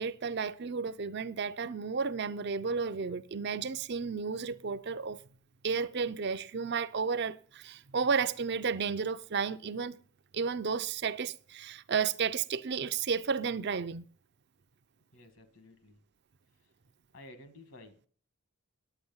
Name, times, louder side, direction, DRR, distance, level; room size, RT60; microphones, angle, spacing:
voice 1, 0.0-5.2 5.6-10.0 10.3-14.0, right 5 dB, 50° right, 0.5 m, -32 dB
voice 2, 15.1-16.0 16.6-16.7 17.1-18.0, left 1 dB, 60° left, 1.7 m, -53 dB
10.0 x 8.8 x 5.5 m
head